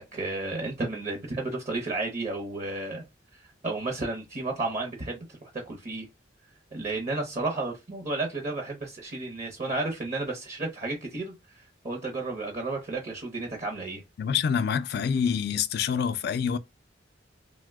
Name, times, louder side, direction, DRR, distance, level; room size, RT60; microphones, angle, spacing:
voice 1, 0.0-3.0 3.6-6.1 6.7-14.0, right 2 dB, 40° right, 0.7 m, -32 dB
voice 2, 14.2-16.6, left 7 dB, 55° left, 0.3 m, -26 dB
2.8 x 2.1 x 3.4 m
head